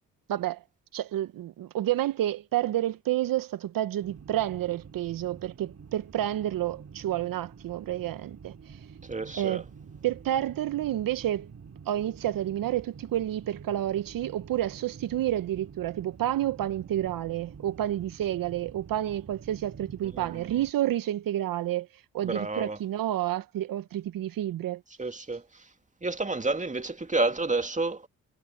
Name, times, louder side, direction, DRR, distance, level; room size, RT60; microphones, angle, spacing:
voice 1, 0.3-0.6 0.9-8.8 9.3-9.6 10.0-11.5 11.9-21.9 22.1-24.8, right 12 dB, 70° right, 1.2 m, -29 dB
sound 1, 4.0-20.7, right 6 dB, 45° right, 3.9 m, -48 dB
voice 2, 9.1-9.6 20.1-20.4 22.2-22.8 25.0-25.4 26.0-28.1, right 3 dB, 20° right, 2.4 m, -30 dB
supercardioid pair, 50°, 35 cm